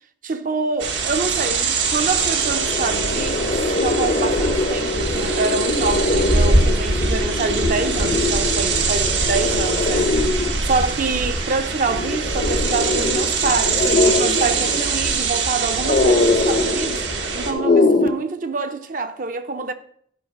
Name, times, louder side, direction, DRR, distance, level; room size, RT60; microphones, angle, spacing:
voice 1, 0.2-10.1 10.7-17.0 17.3-19.7, right 4 dB, 45° right, 0.6 m, -26 dB
sound 1, 0.8-17.5, right 4 dB, 90° right, 1.2 m, -23 dB
sound 2, 1.5-1.6 1.9-18.1, left 2 dB, 50° left, 0.8 m, -23 dB
11.5 x 4.7 x 5.2 m
head